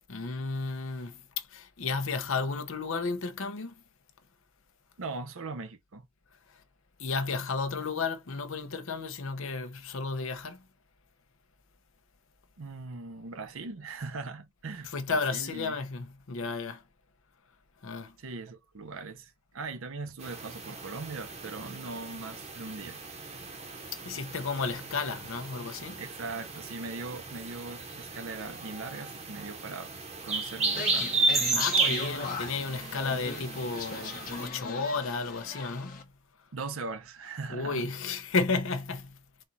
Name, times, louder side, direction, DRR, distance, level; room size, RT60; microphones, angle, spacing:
voice 1, 0.1-3.8 6.5-6.6 7.0-10.7 14.8-16.8 17.8-18.2 23.9-26.0 31.5-36.5 37.5-39.3, left 4 dB, 65° left, 0.7 m, -33 dB
voice 2, 5.0-6.1 12.6-15.8 18.2-23.0 26.0-29.9 30.2-31.1 36.5-37.9, right 3 dB, 70° right, 0.7 m, -40 dB
sound 1, 20.2-34.5, right 3 dB, 30° right, 0.9 m, -34 dB
sound 2, 30.7-36.0, left 5 dB, 40° left, 1.0 m, -37 dB
4.3 x 2.4 x 4.0 m
head